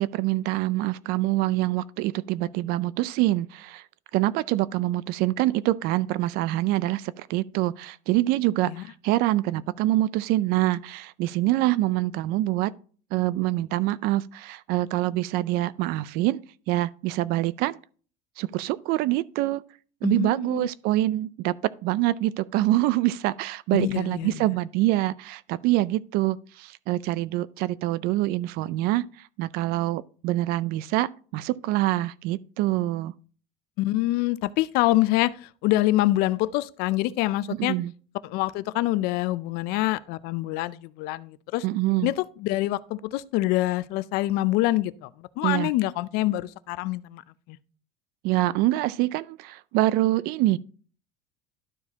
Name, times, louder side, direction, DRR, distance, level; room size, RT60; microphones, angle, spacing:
voice 1, 0.0-3.8 4.1-12.7 13.1-16.4 16.7-17.8 18.4-19.6 20.0-21.5 21.8-29.0 29.4-33.1 37.5-37.9 41.6-42.1 45.4-45.7 48.2-50.6, right 16 dB, 60° right, 0.4 m, -25 dB
voice 2, 20.0-20.7 23.7-24.5 33.8-37.8 38.2-41.6 42.0-47.2 47.5-47.6, left 17 dB, 60° left, 0.4 m, -26 dB
12.0 x 4.8 x 2.8 m
cardioid pair, 150°, 18 cm